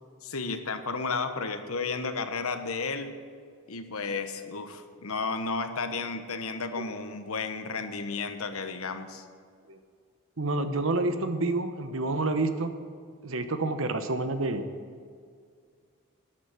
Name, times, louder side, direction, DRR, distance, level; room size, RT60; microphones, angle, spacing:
voice 1, 0.2-3.1 3.7-9.2, left 4 dB, 80° left, 8 dB, 1.1 m, -33 dB
voice 2, 10.4-12.7 13.2-14.7, right 2 dB, 65° right, 9 dB, 1.0 m, -28 dB
12.5 x 10.0 x 7.8 m, 2.1 s
head